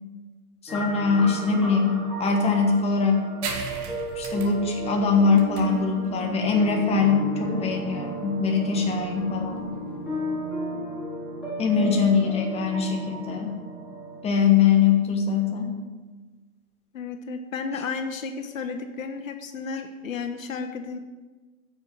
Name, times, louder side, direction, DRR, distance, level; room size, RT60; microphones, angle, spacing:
voice 1, 0.6-3.3 4.1-9.7 11.6-13.6 14.2-15.7, left 5 dB, 15° left, 1 dB, 1.4 m, -22 dB
sound 1, 0.7-14.2, right 1 dB, ahead, 4.4 m, -34 dB
sound 2, 3.4-10.5, right 5 dB, 50° right, 1.8 m, -40 dB
voice 2, 11.7-12.1 16.9-21.0, left 5 dB, 65° left, 7 dB, 1.2 m, -33 dB
9.4 x 6.6 x 7.9 m, 1.3 s
figure-of-eight pair, 120°, 44 cm